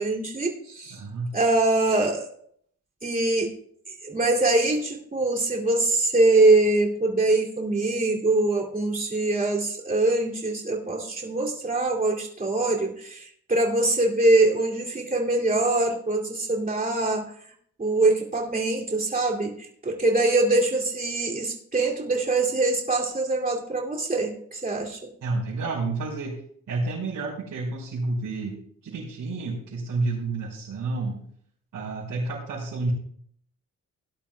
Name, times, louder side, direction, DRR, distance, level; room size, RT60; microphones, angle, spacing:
voice 1, 0.0-1.0 1.3-2.3 3.0-3.5 3.9-17.3 17.8-25.0, right 2 dB, 25° right, -1 dB, 2.6 m, -23 dB
voice 2, 0.9-1.3 25.2-26.4 26.7-31.2 31.7-32.9, right 3 dB, 70° right, -8 dB, 4.7 m, -30 dB
18.0 x 11.0 x 2.3 m, 0.64 s
cardioid pair, 85°, 32 cm